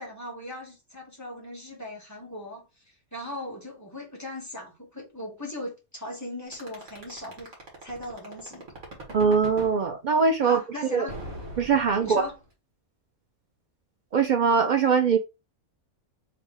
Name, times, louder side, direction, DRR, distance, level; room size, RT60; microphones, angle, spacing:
voice 1, 0.0-2.7 3.1-7.5 7.8-8.6 10.4-11.2 12.0-12.4, left 1 dB, 10° left, 1.6 m, -38 dB
sound 1, 6.5-9.7 11.1-12.5, right 1 dB, 60° right, 1.9 m, -40 dB
voice 2, 9.1-11.1 11.6-12.3 14.1-15.2, right 5 dB, 80° right, 0.4 m, -22 dB
3.5 x 3.4 x 3.7 m
omnidirectional pair, 1.5 m